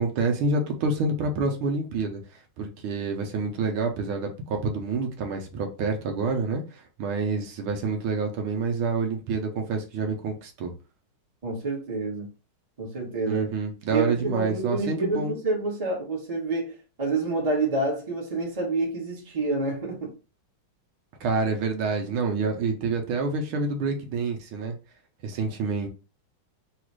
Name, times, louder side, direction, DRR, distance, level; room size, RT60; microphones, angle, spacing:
voice 1, 0.0-2.2 2.6-10.7 13.3-15.3 21.2-24.8 25.2-25.9, right 4 dB, 80° right, 1.7 m, -27 dB
voice 2, 11.4-12.3 12.8-13.5 13.9-20.1, right 3 dB, 20° right, 1.2 m, -28 dB
4.0 x 2.4 x 4.6 m
omnidirectional pair, 2.4 m